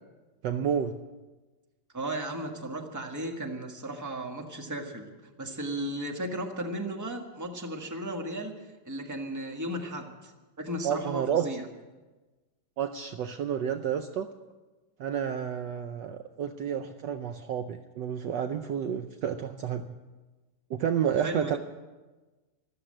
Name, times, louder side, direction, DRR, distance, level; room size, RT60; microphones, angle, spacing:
voice 1, 0.4-1.0 10.8-11.5 12.8-14.3 15.0-19.9 20.7-21.6, right 8 dB, 70° right, 8 dB, 1.2 m, -30 dB
voice 2, 1.9-8.5 8.8-10.3 10.6-11.7 21.2-21.6, right 1 dB, 10° right, 2 dB, 1.3 m, -35 dB
14.0 x 13.0 x 7.7 m, 1.2 s
omnidirectional pair, 2.2 m